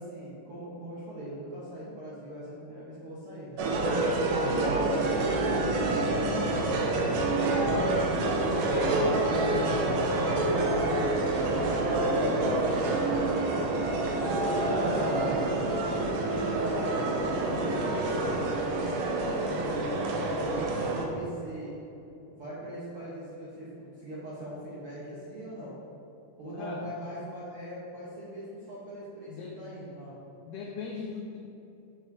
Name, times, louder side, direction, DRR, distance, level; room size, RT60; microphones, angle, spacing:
voice 1, 0.0-3.6 4.3-5.2 5.9-8.1 8.5-11.2 11.5-13.4 13.7-14.4 14.7-17.0 17.3-20.0 20.4-21.7 22.3-25.7 26.4-30.2, right 1 dB, 65° right, -9 dB, 1.4 m, -41 dB
sound 1, 3.6-21.1, right 2 dB, 90° right, 2.5 m, -27 dB
voice 2, 4.2-4.7 20.4-20.9 26.6-26.9 29.3-29.6 30.4-31.4, left 5 dB, 90° left, 0 dB, 1.7 m, -41 dB
7.2 x 6.6 x 2.7 m, 2.9 s
omnidirectional pair, 4.1 m